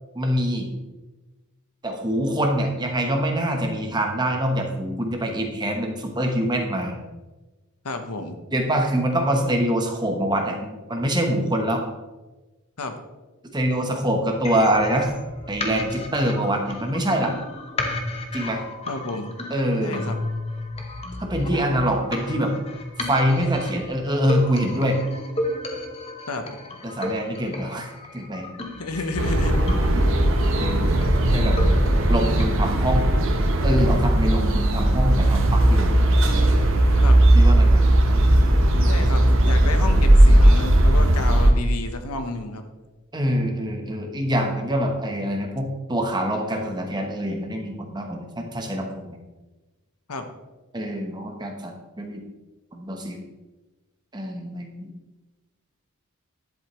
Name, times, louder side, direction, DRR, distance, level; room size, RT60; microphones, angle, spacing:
voice 1, 0.1-0.7 1.8-6.9 8.5-11.8 13.5-15.1 15.5-17.3 18.3-18.6 19.5-20.0 21.2-22.5 23.1-25.0 26.8-28.6 29.9-30.3 30.6-30.8 31.3-31.6 32.1-33.1 33.6-35.9 37.3-37.8 43.1-49.2 50.7-52.2 52.7-53.2 54.1-54.9, equal, 20° right, 3 dB, 1.0 m, -25 dB
voice 2, 7.8-8.4 12.8-13.0 18.9-19.4 19.8-20.2 26.3-26.5 28.8-29.6 37.0-37.2 38.9-42.6 50.1-50.3, left 2 dB, 85° left, 7 dB, 1.0 m, -31 dB
sound 1, 14.4-32.4, left 2 dB, 25° left, 0.9 m, -33 dB
sound 2, 29.2-41.5, right 1 dB, 60° right, 1.0 m, -17 dB
10.5 x 7.9 x 3.1 m, 1.1 s
head